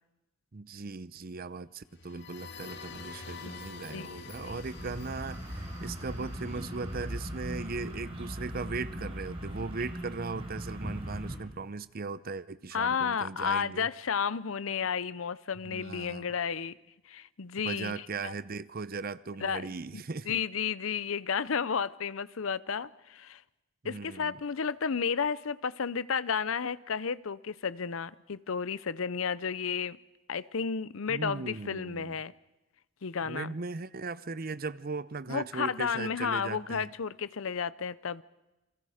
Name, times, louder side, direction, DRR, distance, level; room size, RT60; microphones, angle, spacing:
voice 1, 0.5-13.9 15.6-16.3 17.6-20.4 23.8-24.4 31.1-32.2 33.2-36.9, right 4 dB, 45° right, 0.7 m, -38 dB
sound 1, 1.9-7.6, left 4 dB, 55° left, 1.9 m, -47 dB
voice 2, 3.9-4.3 12.7-16.8 17.1-18.3 19.4-19.7 19.9-23.4 23.8-30.0 30.3-32.3 33.0-33.5 35.3-38.2, left 6 dB, 70° left, 0.6 m, -32 dB
sound 2, 4.2-11.4, equal, 25° right, 4.4 m, -39 dB
29.0 x 23.0 x 5.0 m
head